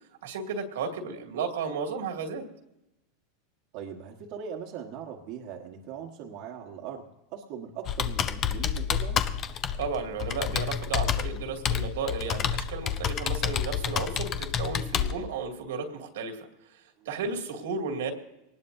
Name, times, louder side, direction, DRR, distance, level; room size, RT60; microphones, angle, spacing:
voice 1, 0.2-2.4 9.8-16.5 17.1-18.1, right 5 dB, 85° right, 3 dB, 2.3 m, -33 dB
voice 2, 3.7-9.2, right 7 dB, 55° right, 0 dB, 1.4 m, -40 dB
Computer keyboard, 7.9-15.1, left 8 dB, 35° left, 0.7 m, -29 dB
23.0 x 19.0 x 2.7 m, 0.91 s
supercardioid pair, 130°, 0 cm